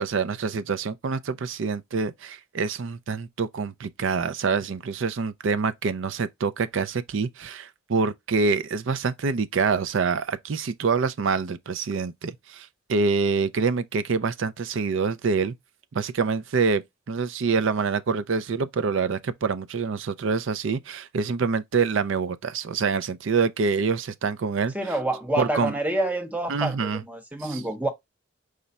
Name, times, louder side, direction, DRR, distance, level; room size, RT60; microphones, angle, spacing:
voice 1, 0.0-15.5 15.9-24.7 25.4-25.7 26.5-27.0 27.4-27.6, right 5 dB, 60° right, 0.4 m, -26 dB
voice 2, 24.7-27.9, right 1 dB, 5° right, 0.7 m, -27 dB
4.9 x 2.2 x 4.0 m
head